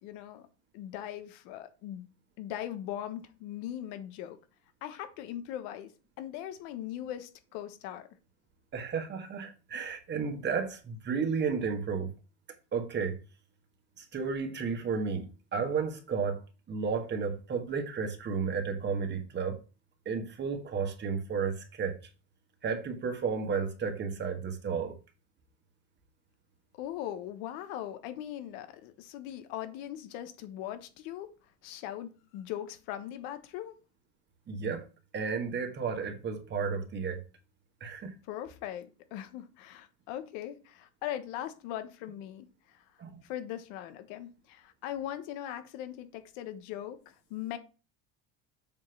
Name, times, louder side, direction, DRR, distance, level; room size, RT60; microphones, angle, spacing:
voice 1, 0.0-0.5 0.7-2.0 2.4-4.4 4.8-5.9 6.2-8.1 26.8-31.3 31.6-33.7 38.3-42.5 43.2-47.6, left 11 dB, 80° left, 1.2 m, -40 dB
voice 2, 8.7-12.1 12.7-13.2 14.0-16.4 16.7-19.6 20.0-22.0 22.6-25.0 34.5-34.8 35.1-37.2 37.8-38.1 43.0-43.2, right 5 dB, 30° right, 1.5 m, -32 dB
7.4 x 3.0 x 5.7 m
supercardioid pair, 120°, 34 cm